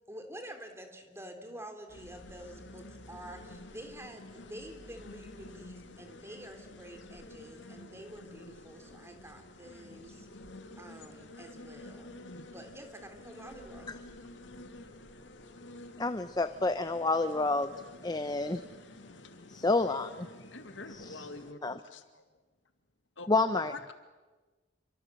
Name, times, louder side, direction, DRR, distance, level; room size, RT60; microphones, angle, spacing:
voice 1, 0.1-10.3 10.7-12.2 12.5-13.9, right 1 dB, 15° right, 6 dB, 3.3 m, -48 dB
sound 1, 1.9-21.5, left 1 dB, 75° left, 2.2 m, -50 dB
voice 2, 16.0-17.7 18.0-18.6 19.5-20.3 20.9-21.3 21.6-21.8 23.3-23.7, left 2 dB, 20° left, 11 dB, 0.8 m, -29 dB
voice 3, 20.5-22.2 23.2-23.3 23.7-23.9, left 3 dB, 90° left, 8 dB, 2.1 m, -46 dB
28.5 x 24.5 x 7.7 m, 1.3 s
head